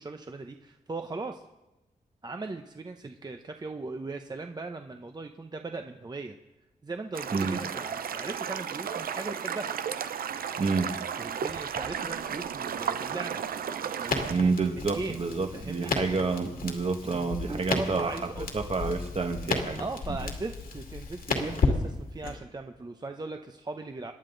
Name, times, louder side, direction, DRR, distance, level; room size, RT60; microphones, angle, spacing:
voice 1, 0.0-1.4 2.2-6.4 6.8-9.7 11.2-13.4 14.0-15.2 15.5-15.9 17.0-18.5 19.8-24.1, right 3 dB, 30° right, 5 dB, 0.8 m, -38 dB
sound 1, 7.1-14.3, right 7 dB, 85° right, 0.7 m, -34 dB
voice 2, 10.6-10.9 14.3-18.2 18.5-19.8 20.1-20.2, right 4 dB, 45° right, 5 dB, 1.7 m, -28 dB
Crackle, 14.1-22.4, left 3 dB, 80° left, 2.5 m, -33 dB
27.5 x 11.0 x 4.0 m, 0.99 s
wide cardioid pair, 95°, 15 cm